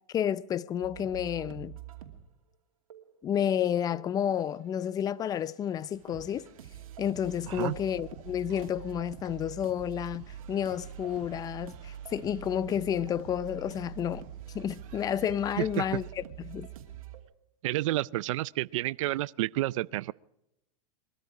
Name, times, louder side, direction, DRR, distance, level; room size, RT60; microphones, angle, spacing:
voice 1, 0.1-1.8 3.2-6.5 7.0-14.3 14.5-16.7, left 9 dB, 20° left, 0.5 m, -31 dB
sound 1, 0.8-2.2 2.9-3.2 3.9-4.9 5.2-17.2, right 10 dB, 85° right, 2.5 m, -45 dB
sound 2, 5.9-16.1, right 10 dB, 45° right, 2.3 m, -58 dB
voice 2, 15.6-16.0 17.6-20.1, right 17 dB, 65° right, 0.5 m, -30 dB
22.0 x 13.5 x 4.9 m
supercardioid pair, 135°, 18 cm